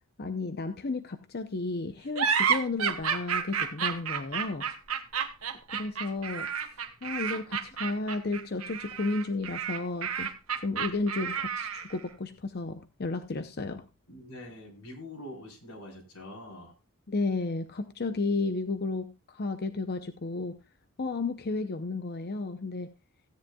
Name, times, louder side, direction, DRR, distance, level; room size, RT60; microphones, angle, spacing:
voice 1, 0.2-4.7 5.7-6.5 7.0-10.3 10.6-13.8 17.1-20.6 21.0-22.9, left 3 dB, 45° left, 9 dB, 0.7 m, -33 dB
sound 1, 2.2-12.0, right 7 dB, 80° right, 1.5 m, -31 dB
voice 2, 14.1-16.8, left 1 dB, 90° left, 1 dB, 4.0 m, -44 dB
16.5 x 10.5 x 2.3 m, 0.27 s
head